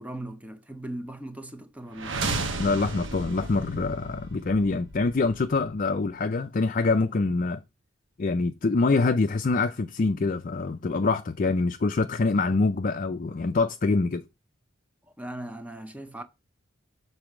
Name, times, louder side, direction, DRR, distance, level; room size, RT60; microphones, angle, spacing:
voice 1, 0.0-2.2 15.2-16.2, right 1 dB, 5° right, 0.6 m, -38 dB
sound 1, 1.9-5.9, right 3 dB, 65° right, 1.3 m, -34 dB
voice 2, 2.6-7.6 8.2-14.2, left 3 dB, 40° left, 0.4 m, -25 dB
6.9 x 4.0 x 6.0 m
head